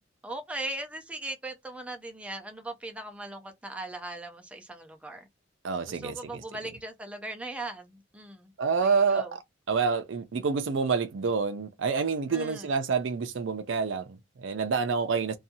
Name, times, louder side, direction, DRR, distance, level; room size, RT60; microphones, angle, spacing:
voice 1, 0.2-5.3 5.9-8.5 8.8-9.4 12.3-12.7, right 2 dB, 5° right, 0.4 m, -39 dB
voice 2, 5.6-6.3 8.6-9.4 9.7-15.4, right 5 dB, 65° right, 0.4 m, -28 dB
2.6 x 2.3 x 2.7 m
head